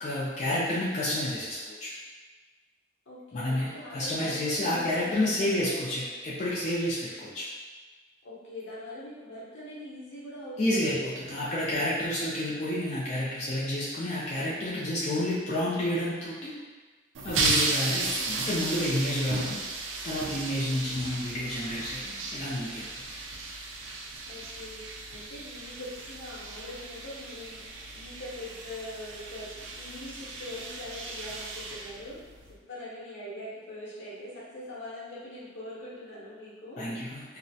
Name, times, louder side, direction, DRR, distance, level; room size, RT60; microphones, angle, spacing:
voice 1, 0.0-1.9 3.3-7.4 10.6-16.5 17.2-19.6 20.0-22.9 36.8-37.2, left 1 dB, 35° left, -8 dB, 0.4 m, -30 dB
voice 2, 3.1-5.8 8.2-10.9 11.3-11.4 18.1-18.5 20.6-20.9 24.3-32.2 32.7-36.9, left 1 dB, 75° left, -7 dB, 0.8 m, -42 dB
sound 1, 17.1-32.5, right 3 dB, 80° right, 0.3 m, -35 dB
2.3 x 2.0 x 2.6 m, 1.3 s
head